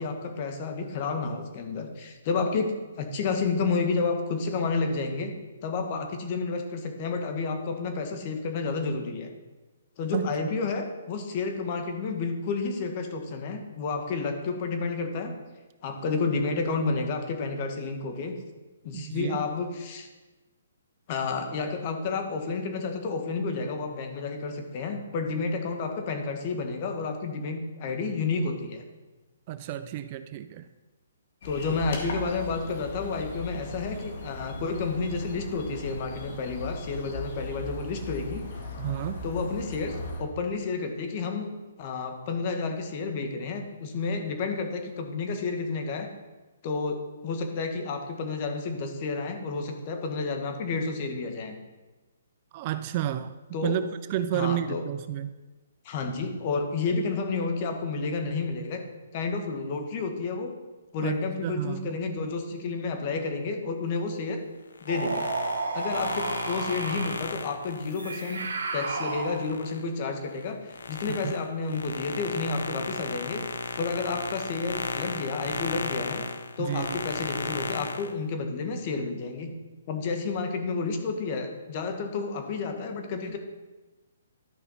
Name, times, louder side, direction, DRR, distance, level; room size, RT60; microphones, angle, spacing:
voice 1, 0.0-2.7 3.0-5.3 5.6-9.3 10.0-15.3 15.8-18.3 18.8-20.1 21.1-28.8 31.4-38.5 39.2-46.1 46.6-51.5 53.5-53.8 54.3-54.8 55.8-58.8 59.1-60.6 60.9-64.4 64.8-65.3 65.7-73.4 73.8-76.2 76.6-79.5 79.9-83.4, left 4 dB, 35° left, 5 dB, 1.4 m, -30 dB
voice 2, 10.1-10.5 18.9-19.4 29.5-30.7 38.8-39.3 52.5-53.3 53.6-55.3 61.0-62.0 71.1-71.3 76.6-77.0, right 11 dB, 35° right, 12 dB, 0.4 m, -31 dB
sound 1, 31.4-40.2, left 2 dB, 55° left, 2.2 m, -38 dB
sound 2, 64.7-69.8 70.3-78.1, left 4 dB, 85° left, 0.7 m, -35 dB
sound 3, 64.9-67.3 68.0-69.7, right 3 dB, 80° right, 1.9 m, -32 dB
12.5 x 5.5 x 4.2 m, 1.2 s
hypercardioid pair, 155°, 0 cm